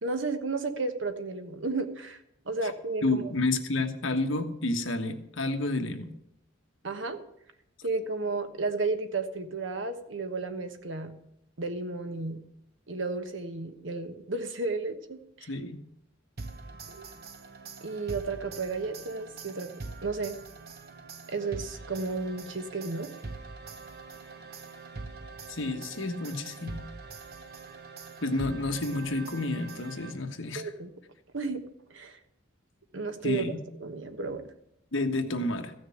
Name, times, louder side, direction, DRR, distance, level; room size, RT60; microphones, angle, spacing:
voice 1, 0.0-3.3 6.8-7.2 7.8-11.1 11.6-12.4 12.9-15.5 16.9-17.1 17.8-19.7 20.0-20.4 21.3-23.1 30.5-30.9 31.3-31.6 31.9-32.2 32.9-33.5 33.8-34.4, right 3 dB, 65° right, 8 dB, 1.3 m, -33 dB
voice 2, 3.0-6.1 15.5-15.8 25.5-26.8 28.2-30.7 33.2-33.6 34.9-35.7, left 2 dB, 75° left, 6 dB, 1.4 m, -30 dB
sound 1, 16.4-30.5, right 3 dB, 50° right, 1.0 m, -44 dB
14.5 x 6.4 x 8.5 m, 0.78 s
head